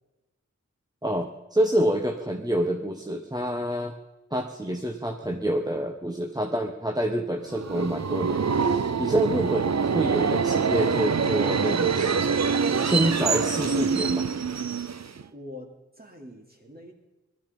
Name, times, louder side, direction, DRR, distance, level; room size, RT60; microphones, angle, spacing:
voice 1, 1.0-3.9 4.3-12.2 12.8-14.3, right 1 dB, 15° right, 3 dB, 1.2 m, -27 dB
Subway metro underground, 7.5-15.2, right 5 dB, 65° right, 0.7 m, -25 dB
voice 2, 15.3-16.9, left 1 dB, 30° right, 1 dB, 3.3 m, -44 dB
18.5 x 13.0 x 5.4 m, 1.1 s
wide cardioid pair, 55°, 29 cm